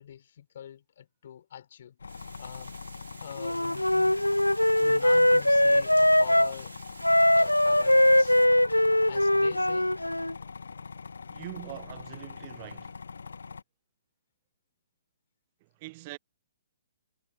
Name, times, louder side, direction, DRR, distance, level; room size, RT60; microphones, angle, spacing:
voice 1, 0.0-2.0 2.4-2.8 3.2-4.2 4.6-6.8 7.3-8.4 8.7-10.0, left 9 dB, 50° left, 4.3 m, -45 dB
sound 1, 2.0-13.6, left 5 dB, 65° left, 1.4 m, -43 dB
Water, 2.1-8.5, right 5 dB, 70° right, 4.1 m, -50 dB
Wind instrument woodwind instrument, 3.4-6.5 7.0-10.3, left 1 dB, 90° left, 0.3 m, -22 dB
voice 2, 11.3-13.0 15.6-16.2, right 22 dB, 35° right, 0.7 m, -43 dB
figure-of-eight pair, 125°, 0 cm